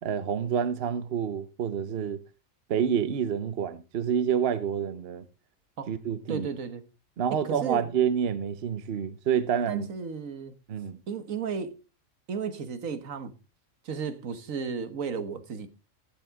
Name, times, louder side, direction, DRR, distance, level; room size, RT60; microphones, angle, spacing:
voice 1, 0.0-2.2 2.7-5.2 5.9-6.5 7.2-9.9 10.7-11.0, right 8 dB, 55° right, 0.9 m, -28 dB
voice 2, 6.3-6.8 7.4-7.8 9.7-10.6 11.1-11.8 12.3-13.3 13.8-15.7, right 6 dB, 75° right, 1.6 m, -33 dB
15.5 x 7.4 x 3.5 m
omnidirectional pair, 1.4 m